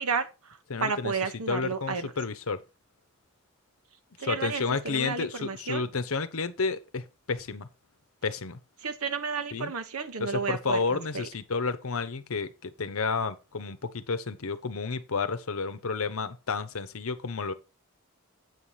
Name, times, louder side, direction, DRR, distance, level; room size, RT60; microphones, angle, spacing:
voice 1, 0.0-2.1 4.2-5.8 8.8-11.3, right 5 dB, 90° right, 1.2 m, -32 dB
voice 2, 0.7-1.1 1.5-2.6 4.2-7.7 8.2-8.6 9.5-9.7 10.2-17.5, left 4 dB, 75° left, 0.8 m, -31 dB
8.1 x 5.7 x 4.9 m
head